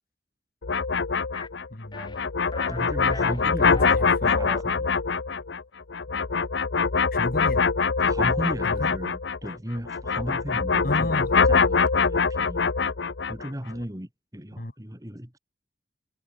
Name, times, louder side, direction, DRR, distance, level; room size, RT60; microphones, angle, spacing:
sound 1, 0.6-9.6 9.9-13.5, left 5 dB, 85° left, 0.8 m, -24 dB
sound 2, 1.3-1.5 1.9-2.2 2.5-2.8 3.1-3.9 4.2-4.6, left 2 dB, 25° left, 1.5 m, -38 dB
voice 1, 1.7-2.2 2.8-2.9 3.2-4.5 7.1-7.6 8.6-9.0 10.8-11.5 14.5-14.7, left 1 dB, 50° left, 1.8 m, -33 dB
voice 2, 2.7-4.9 8.0-12.6 13.3-15.4, equal, 20° right, 2.6 m, -36 dB
head